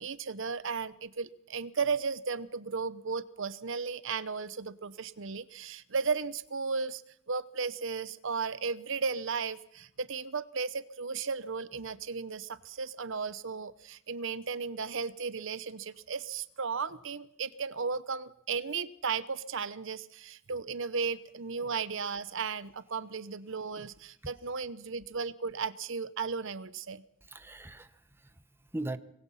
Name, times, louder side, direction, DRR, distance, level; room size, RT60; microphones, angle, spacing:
voice 1, 0.0-7.0 7.3-27.0, right 5 dB, 65° right, 15 dB, 0.9 m, -35 dB
voice 2, 27.2-29.0, right 1 dB, 10° right, 11 dB, 1.0 m, -40 dB
25.0 x 21.0 x 5.7 m, 0.73 s
head